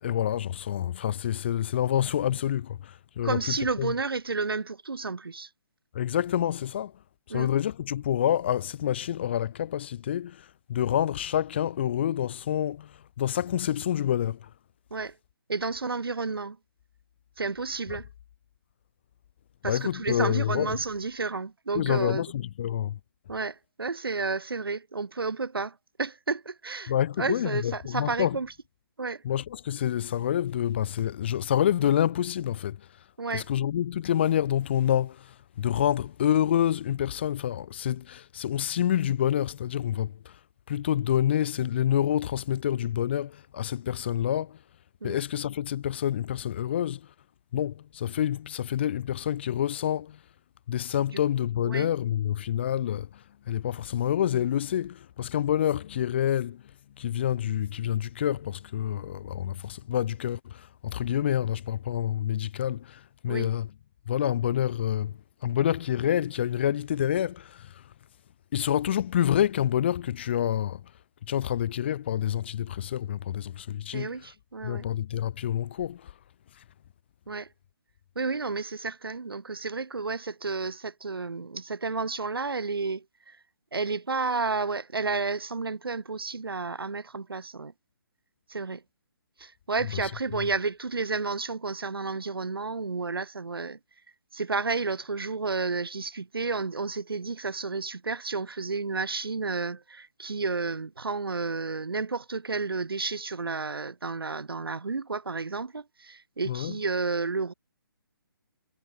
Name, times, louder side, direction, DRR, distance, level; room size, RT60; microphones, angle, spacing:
voice 1, 0.0-3.9 5.9-7.0 7.3-14.5 19.6-20.8 21.7-23.0 26.9-28.4 29.2-33.0 33.3-40.4 40.7-44.6 45.0-47.1 47.5-50.2 50.7-56.6 57.0-63.7 64.1-67.9 68.5-70.8 71.2-74.3 74.6-76.1 76.6-76.7 89.8-90.5 106.5-106.8, left 10 dB, 30° left, 0.4 m, -28 dB
voice 2, 3.2-5.5 7.3-7.5 14.9-15.1 15.5-16.6 17.4-18.1 19.6-22.2 23.3-26.9 27.2-28.5 29.0-29.2 33.2-33.5 45.0-45.2 51.6-51.9 63.3-63.5 73.9-74.8 77.3-77.5 78.1-83.4 83.7-87.7 88.5-88.8 89.4-93.8 94.3-107.5, right 4 dB, 85° right, 2.8 m, -31 dB
hypercardioid pair, 160°, 12 cm